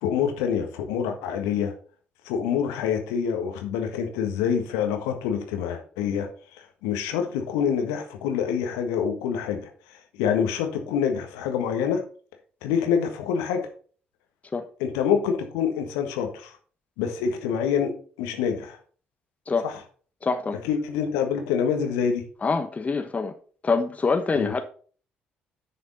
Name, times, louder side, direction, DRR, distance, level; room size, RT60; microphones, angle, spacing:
voice 1, 0.0-1.7 2.2-9.6 9.9-12.0 12.6-13.7 14.8-16.6 17.0-17.9 18.2-18.8 19.6-19.8 20.6-22.2 24.3-24.5, left 7 dB, 70° left, 1.5 m, -26 dB
voice 2, 20.2-20.6 22.4-23.3 23.6-24.6, left 4 dB, 30° left, 1.1 m, -25 dB
10.0 x 5.9 x 4.1 m
figure-of-eight pair, 45°, 5 cm